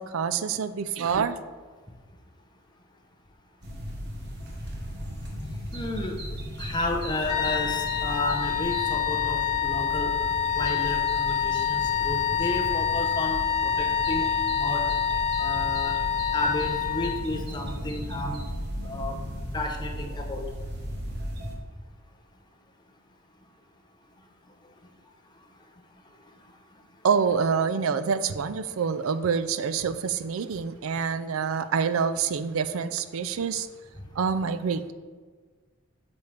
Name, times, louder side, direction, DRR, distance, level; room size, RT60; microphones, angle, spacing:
voice 1, 0.0-1.4 27.0-33.7 34.2-34.9, right 6 dB, 85° right, 12 dB, 0.4 m, -26 dB
sound 1, 3.6-21.5, equal, 55° right, 1.4 m, -36 dB
voice 2, 5.7-6.2 6.6-10.1 10.5-14.9 15.4-16.0 16.3-18.4 18.8-19.2 19.5-20.4, left 2 dB, 20° left, 2 dB, 0.9 m, -32 dB
sound 2, 7.3-17.2, left 8 dB, 55° left, 1.2 m, -27 dB
8.2 x 6.9 x 3.4 m, 1.5 s
head